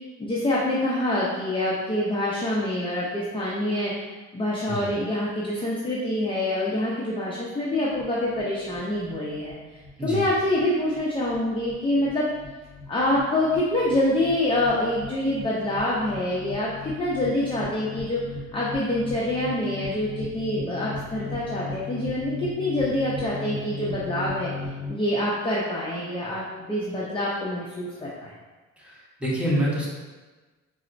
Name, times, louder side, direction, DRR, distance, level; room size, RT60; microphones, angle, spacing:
voice 1, 0.2-3.9 4.3-9.5 10.0-12.3 12.9-18.2 18.5-24.5 24.9-28.3, left 1 dB, 15° left, -6 dB, 0.5 m, -26 dB
sound 1, 7.9-24.9, left 3 dB, 50° right, 1.2 m, -38 dB
voice 2, 29.2-29.9, equal, 5° right, -6 dB, 1.0 m, -26 dB
4.0 x 2.0 x 2.5 m, 1.3 s
cardioid pair, 90°, 30 cm